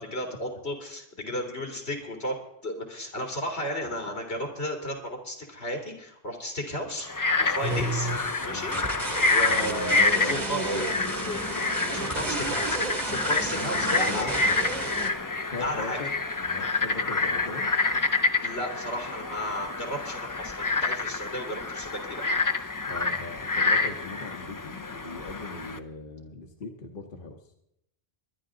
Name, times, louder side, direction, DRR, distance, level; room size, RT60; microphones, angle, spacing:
voice 1, 0.0-2.4 2.6-7.1 7.4-8.1 8.5-8.8 9.3-11.5 11.8-14.3 15.6-16.0 18.3-22.3, equal, 90° left, 1 dB, 3.3 m, -33 dB
Frog, 7.0-25.8, left 3 dB, 25° left, 0.6 m, -28 dB
sound 1, 7.6-15.1, right 2 dB, 45° right, 1.9 m, -32 dB
voice 2, 8.0-8.7 9.1-11.4 13.8-14.5 15.5-17.7 22.9-27.4, left 3 dB, 55° left, 3 dB, 1.3 m, -40 dB
23.5 x 11.0 x 3.8 m, 0.80 s
omnidirectional pair, 1.1 m